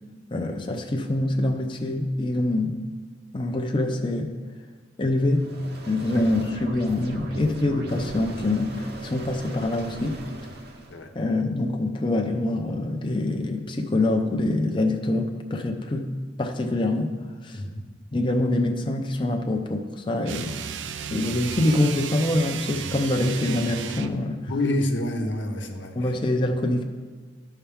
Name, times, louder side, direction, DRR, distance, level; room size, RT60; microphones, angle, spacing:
voice 1, 0.3-2.8 3.3-4.3 5.0-5.5 5.9-10.2 11.1-17.2 17.4-17.6 18.1-20.6 21.1-24.5 25.9-26.8, left 1 dB, 25° left, 3 dB, 0.5 m, -25 dB
sound 1, 5.3-11.0, right 1 dB, 60° right, 0.9 m, -39 dB
voice 2, 17.5-17.9 24.5-26.1, left 1 dB, 90° left, 3 dB, 0.9 m, -28 dB
sound 2, 20.2-24.2, right 7 dB, 80° right, 0.4 m, -34 dB
13.0 x 5.6 x 3.5 m, 1.5 s
head